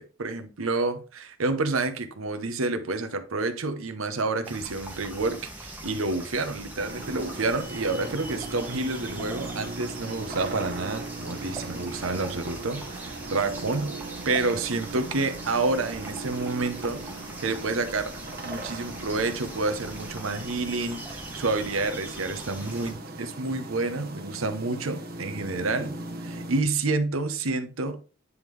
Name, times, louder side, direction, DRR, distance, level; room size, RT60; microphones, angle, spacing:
voice 1, 0.0-13.9 14.2-17.0 17.4-18.1 18.4-28.0, right 3 dB, 90° right, 0.8 m, -29 dB
sound 1, 4.4-22.9, right 1 dB, 10° right, 1.1 m, -41 dB
sound 2, 6.8-26.6, right 2 dB, 45° right, 0.9 m, -39 dB
9.5 x 3.6 x 3.2 m
head